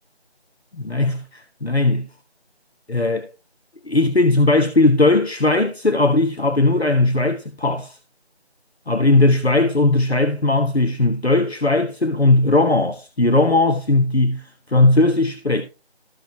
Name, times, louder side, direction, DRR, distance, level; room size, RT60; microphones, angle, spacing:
voice 1, 0.8-2.1 2.9-3.3 3.9-8.0 8.9-14.4 14.7-15.6, left 2 dB, 75° left, 1.3 m, -18 dB
14.0 x 6.2 x 3.0 m
figure-of-eight pair, 180°, 32 cm